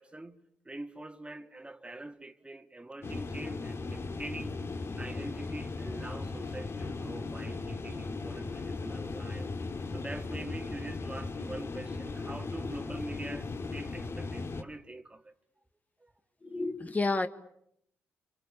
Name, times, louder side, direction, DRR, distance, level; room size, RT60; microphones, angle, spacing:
voice 1, 0.0-4.6 5.0-9.5 9.9-15.3 16.0-16.1, right 2 dB, 20° right, 2.1 m, -44 dB
sound 1, 3.0-14.6, left 3 dB, 45° left, 2.6 m, -37 dB
voice 2, 16.4-17.3, left 3 dB, 25° left, 1.8 m, -30 dB
27.0 x 25.0 x 8.6 m
hypercardioid pair, 50°, 6 cm